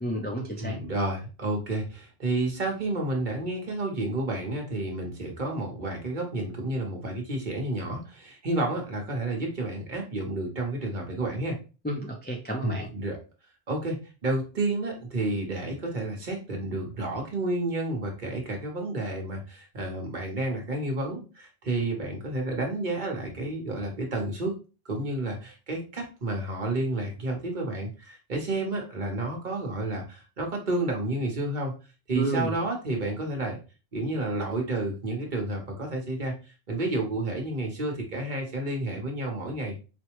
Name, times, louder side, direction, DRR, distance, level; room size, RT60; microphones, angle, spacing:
voice 1, 0.0-0.8 11.8-12.9 32.1-32.5, right 1 dB, 15° left, 0 dB, 0.4 m, -31 dB
voice 2, 0.6-11.6 12.6-13.2 13.7-24.6 24.9-31.7 32.1-33.6 33.9-36.3 36.7-39.7, right 2 dB, 45° right, 1 dB, 1.0 m, -30 dB
4.2 x 2.2 x 2.9 m, 0.32 s
omnidirectional pair, 1.1 m